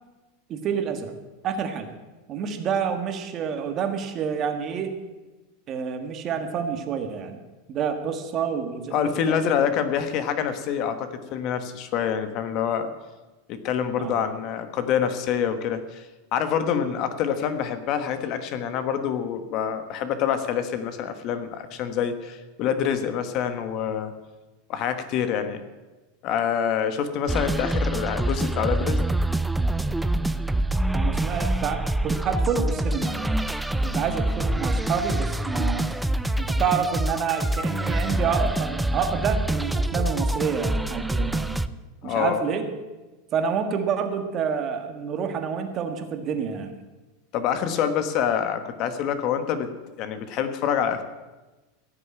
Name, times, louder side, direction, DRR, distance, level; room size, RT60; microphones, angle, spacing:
voice 1, 0.5-1.1 1.4-1.9 2.3-4.9 5.7-7.4 7.7-9.4 14.0-14.2 30.9-33.3 33.8-35.9 36.4-41.6 42.0-42.7 43.3-46.7, right 6 dB, 35° right, 7 dB, 1.6 m, -28 dB
voice 2, 8.9-12.9 13.5-16.0 16.3-24.1 24.7-25.6 26.2-29.0 42.0-42.4 47.3-49.7 50.0-51.0, left 8 dB, 45° left, 9 dB, 1.2 m, -26 dB
sound 1, 27.3-41.7, right 1 dB, 5° right, 0.4 m, -25 dB
16.0 x 6.7 x 8.9 m, 1.2 s
supercardioid pair, 150°, 0 cm